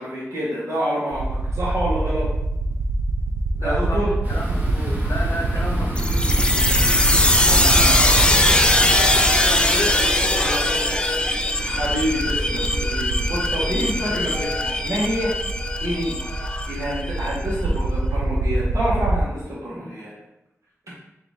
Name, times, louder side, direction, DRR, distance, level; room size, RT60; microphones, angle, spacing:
voice 1, 0.0-2.3 3.6-4.1 7.4-8.0 11.6-15.3 15.8-16.2 16.7-20.1, equal, 70° right, -8 dB, 1.4 m, -27 dB
sound 1, 1.1-19.2, right 3 dB, 90° right, 0.3 m, -26 dB
voice 2, 3.5-6.4 7.4-10.9, left 1 dB, 60° left, 0 dB, 0.7 m, -32 dB
sound 2, 4.2-14.4, equal, 30° right, 1.2 m, -30 dB
sound 3, 6.0-17.4, left 1 dB, 20° left, 0.4 m, -21 dB
3.9 x 2.8 x 3.5 m, 0.86 s
cardioid pair, 45°, 5 cm